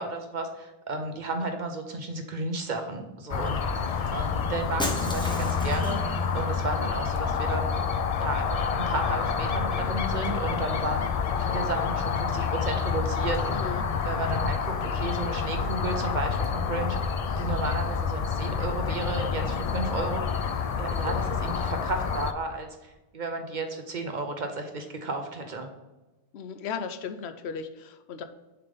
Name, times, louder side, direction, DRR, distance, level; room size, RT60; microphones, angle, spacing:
voice 1, 0.0-3.8 4.1-6.0 6.3-7.8 8.2-11.0 11.4-13.8 14.0-20.4 20.8-25.7, right 2 dB, 50° right, 5 dB, 0.8 m, -33 dB
sound 1, 3.3-22.3, left 6 dB, 55° left, 0.4 m, -28 dB
Shatter, 4.8-6.1, left 1 dB, 5° left, 0.6 m, -33 dB
voice 2, 13.5-13.9 26.3-28.2, left 6 dB, 80° left, 8 dB, 0.9 m, -36 dB
6.7 x 3.6 x 5.3 m, 1.1 s
omnidirectional pair, 1.1 m